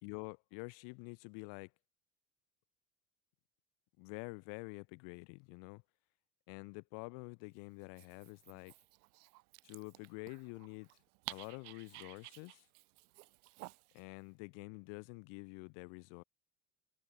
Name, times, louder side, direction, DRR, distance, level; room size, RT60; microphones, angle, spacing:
voice 1, 0.0-1.7 4.0-5.8 6.5-8.7 9.6-10.9 11.3-12.6 13.9-16.2, left 36 dB, 70° left, 3.7 m, -48 dB
Dog, 7.8-14.0, right 24 dB, 75° right, 5.1 m, -53 dB
hypercardioid pair, 70°, 46 cm